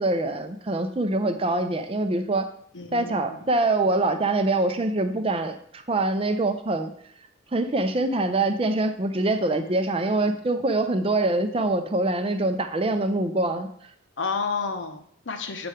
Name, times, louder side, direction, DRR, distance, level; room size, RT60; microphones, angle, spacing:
voice 1, 0.0-2.5 2.9-6.9 7.5-13.7, right 2 dB, 30° right, 8 dB, 0.5 m, -24 dB
voice 2, 2.7-3.4 14.2-15.7, left 4 dB, 75° left, 6 dB, 0.9 m, -31 dB
7.9 x 4.4 x 4.9 m, 0.65 s
head